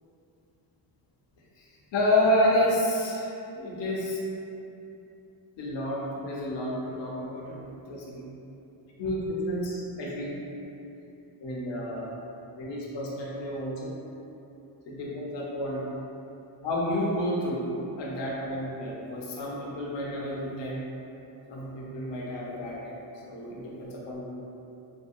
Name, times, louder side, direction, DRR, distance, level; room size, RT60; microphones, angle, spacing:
voice 1, 1.9-4.2 5.6-7.6 7.9-8.2 9.0-10.4 11.4-12.1 12.6-14.0 14.9-15.8 16.6-17.7 18.0-20.8 21.5-23.0 23.3-24.3, left 1 dB, 65° left, -4 dB, 0.6 m, -30 dB
2.7 x 2.1 x 2.4 m, 2.8 s
cardioid pair, 90°, 48 cm